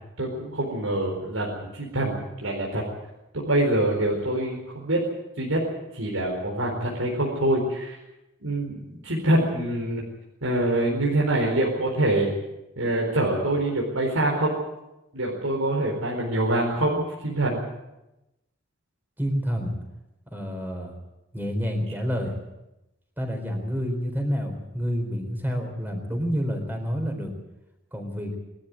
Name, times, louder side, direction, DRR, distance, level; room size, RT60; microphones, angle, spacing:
voice 1, 0.2-2.8 3.3-5.0 5.4-5.6 5.9-8.0 8.4-10.0 10.4-12.3 12.8-14.5 15.1-17.6, right 1 dB, 85° right, -2 dB, 4.4 m, -25 dB
voice 2, 19.2-19.8 20.3-21.0 21.3-22.4 23.2-27.3 27.9-28.3, equal, 10° right, 3 dB, 4.1 m, -28 dB
22.0 x 13.5 x 9.6 m, 0.95 s
head